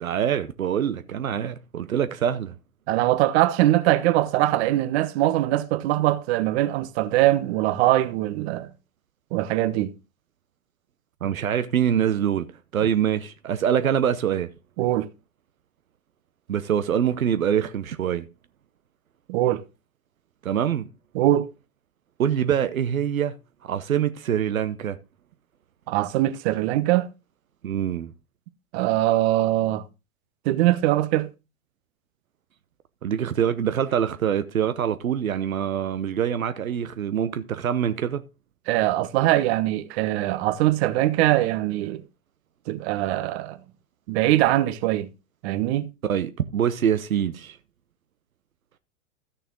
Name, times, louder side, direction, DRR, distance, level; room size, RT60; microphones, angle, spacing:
voice 1, 0.0-2.5 11.2-12.5 12.7-14.5 16.5-18.2 20.4-20.9 22.2-23.3 23.6-25.0 27.6-28.1 33.0-38.2 46.0-47.6, right 9 dB, 80° right, 0.9 m, -24 dB
voice 2, 2.9-8.7 9.3-9.9 14.8-15.1 19.3-19.6 21.1-21.5 25.9-27.1 28.7-29.8 30.4-31.3 38.7-42.0 42.7-43.6 44.1-45.1 45.4-45.9, right 15 dB, 50° right, 1.1 m, -22 dB
14.0 x 6.7 x 3.7 m
hypercardioid pair, 95°, 41 cm